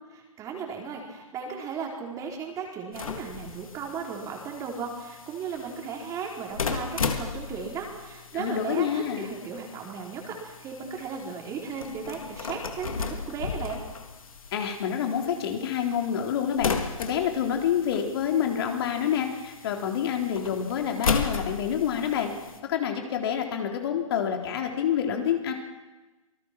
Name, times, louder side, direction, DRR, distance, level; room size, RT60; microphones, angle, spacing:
voice 1, 0.4-13.8, right 6 dB, 20° right, 1 dB, 4.4 m, -36 dB
sound 1, 2.9-22.6, left 5 dB, 75° left, 3.3 m, -36 dB
voice 2, 8.3-9.3 14.5-16.7 17.0-22.3 22.7-25.5, left 8 dB, 45° left, 3 dB, 3.7 m, -27 dB
27.5 x 20.0 x 6.1 m, 1.2 s
hypercardioid pair, 145°, 18 cm